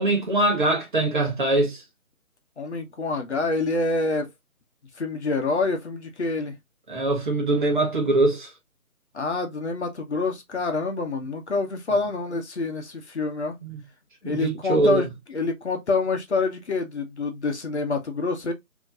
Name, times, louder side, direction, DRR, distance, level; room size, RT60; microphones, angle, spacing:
voice 1, 0.0-1.8 6.9-8.5 13.6-13.8 14.2-15.0, right 2 dB, 35° right, 1.0 m, -22 dB
voice 2, 2.6-4.3 5.0-6.6 9.1-13.5 14.2-18.5, left 3 dB, 50° left, 0.9 m, -27 dB
4.1 x 2.9 x 2.4 m
figure-of-eight pair, 155°, 43 cm